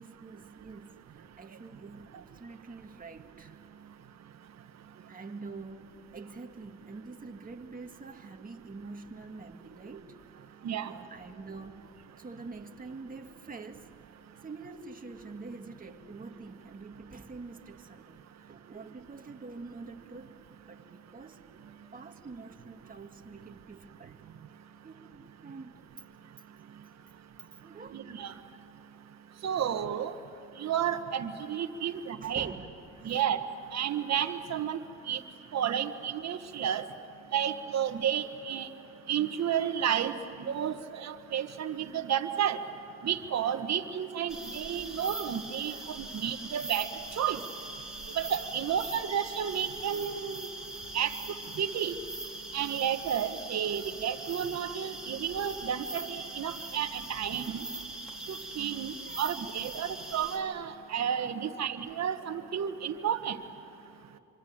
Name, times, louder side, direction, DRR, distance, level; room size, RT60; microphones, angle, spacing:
voice 1, 0.0-3.6 5.1-10.4 10.8-13.9 14.4-20.4 20.7-24.2 24.8-25.8 27.0-27.1 27.6-28.0 31.9-32.7 33.0-33.2 56.5-56.8 57.5-57.6 58.8-59.2 59.7-59.8, right 3 dB, 30° right, 2.0 m, -46 dB
voice 2, 27.9-28.3 29.4-30.1 30.6-32.5 33.0-33.4 33.7-34.8 35.1-35.2 35.5-36.8 37.3-38.7 39.1-42.6 43.0-46.9 47.2-47.4 48.2-50.5 50.9-51.1 51.6-51.9 52.5-57.6 58.6-63.4, right 9 dB, 60° right, 1.6 m, -31 dB
sound 1, 44.3-60.4, right 1 dB, ahead, 4.0 m, -41 dB
26.5 x 25.0 x 8.9 m
cardioid pair, 90°, 30 cm